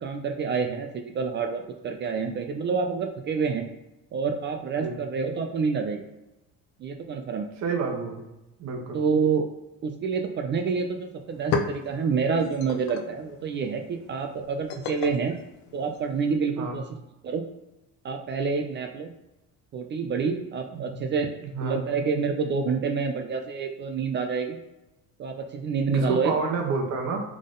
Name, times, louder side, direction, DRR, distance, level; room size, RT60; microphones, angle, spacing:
voice 1, 0.0-3.7 4.1-6.0 6.8-7.5 8.9-9.5 9.8-15.3 15.7-16.8 17.2-17.4 18.0-19.1 19.7-21.3 21.6-24.6 25.2-26.3, right 5 dB, 35° right, 5 dB, 0.4 m, -28 dB
voice 2, 7.6-8.2 8.6-9.0 16.6-16.8 20.7-21.0 21.4-21.8 25.9-27.2, right 4 dB, 50° right, 1 dB, 1.1 m, -29 dB
sound 1, 10.8-10.9 11.2-16.4, left 4 dB, 85° left, 0.7 m, -35 dB
3.8 x 3.6 x 3.8 m, 0.96 s
cardioid pair, 160°, 34 cm